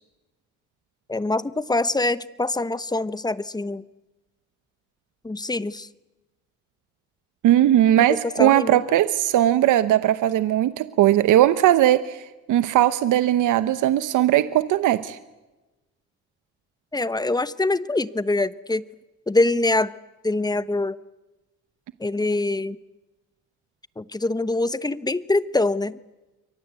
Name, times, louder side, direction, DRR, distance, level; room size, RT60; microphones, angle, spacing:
voice 1, 1.1-3.8 5.2-5.9 8.4-8.8 16.9-18.8 19.3-19.9 20.2-21.0 22.0-22.8 24.0-26.0, left 2 dB, 15° left, 16 dB, 1.0 m, -24 dB
voice 2, 7.4-12.2 12.5-15.2, right 12 dB, 80° right, 13 dB, 1.0 m, -19 dB
29.0 x 23.5 x 8.3 m, 1.1 s
cardioid pair, 90°, 30 cm